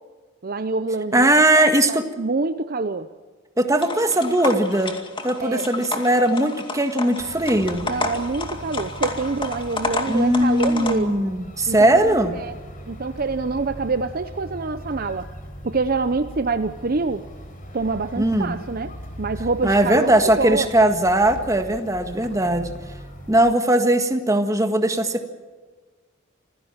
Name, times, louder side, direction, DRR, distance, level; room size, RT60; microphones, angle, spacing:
voice 1, 0.4-3.1 5.4-5.7 7.8-11.3 11.7-12.0 12.4-12.5 12.9-15.3 15.6-17.2 17.7-18.9 19.2-20.7 22.4-22.5, right 3 dB, 45° right, 10 dB, 0.7 m, -26 dB
voice 2, 1.1-2.0 3.6-4.9 5.2-7.8 10.1-12.3 18.1-18.5 19.6-22.7 23.3-25.3, right 1 dB, 15° right, 7 dB, 1.7 m, -19 dB
sound 1, 3.8-10.9, left 3 dB, 25° left, 2.3 m, -31 dB
sound 2, 7.2-23.4, equal, 40° left, 4.3 m, -39 dB
27.0 x 16.0 x 7.3 m, 1.4 s
head